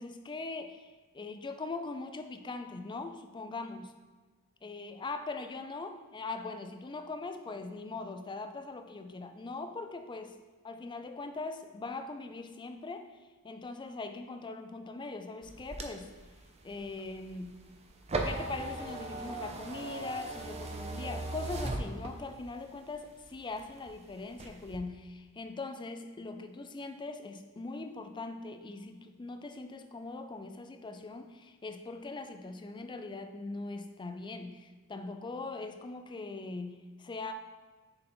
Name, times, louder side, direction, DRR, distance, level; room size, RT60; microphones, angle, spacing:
voice 1, 0.0-3.9 4.6-10.4 10.6-13.2 13.4-16.1 16.6-17.7 18.3-37.3, left 3 dB, 20° left, 7 dB, 0.4 m, -41 dB
sound 1, 15.4-22.5 22.9-23.9 24.3-24.8, right 2 dB, 30° right, 0.6 m, -38 dB
6.7 x 4.0 x 4.3 m, 1.3 s
head